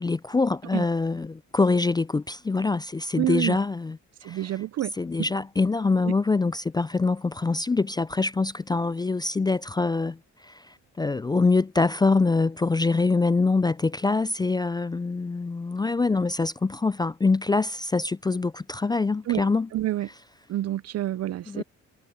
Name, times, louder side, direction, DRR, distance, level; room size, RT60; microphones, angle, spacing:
voice 1, 0.0-4.0 4.2-4.4 5.0-19.7 21.5-21.6, left 3 dB, 15° left, 0.3 m, -24 dB
voice 2, 3.1-3.6 4.2-4.9 6.0-6.1 19.3-19.5 19.7-20.1 20.5-21.6, right 14 dB, 55° right, 0.5 m, -28 dB
cardioid pair, 90°, 30 cm